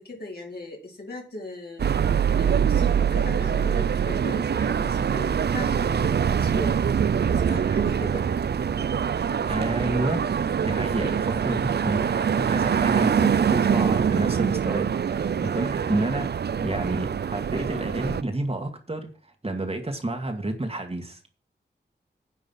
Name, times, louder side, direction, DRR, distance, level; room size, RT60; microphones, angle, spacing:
voice 1, 0.0-1.9 2.4-6.8 7.2-8.2, left 1 dB, 55° left, 4.2 m, -38 dB
sound 1, 1.8-18.2, right 7 dB, 60° right, 0.5 m, -24 dB
voice 2, 9.4-10.3 10.6-16.3 16.6-21.2, right 2 dB, 30° right, 2.0 m, -30 dB
10.0 x 8.3 x 5.7 m
wide cardioid pair, 75°, 19 cm